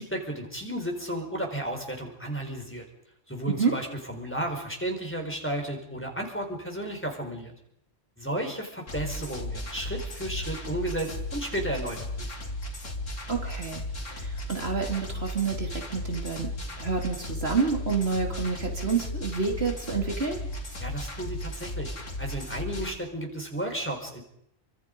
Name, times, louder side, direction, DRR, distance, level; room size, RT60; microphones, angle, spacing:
voice 1, 0.0-2.9 3.3-7.5 8.2-12.3 20.8-24.2, right 1 dB, 10° left, 1 dB, 4.4 m, -33 dB
sound 1, 8.9-22.9, left 1 dB, 70° left, 3.3 m, -35 dB
voice 2, 13.3-13.8 14.1-16.5 16.8-20.4, right 5 dB, 50° right, 2 dB, 2.8 m, -28 dB
28.0 x 24.5 x 5.2 m, 0.74 s
omnidirectional pair, 1.4 m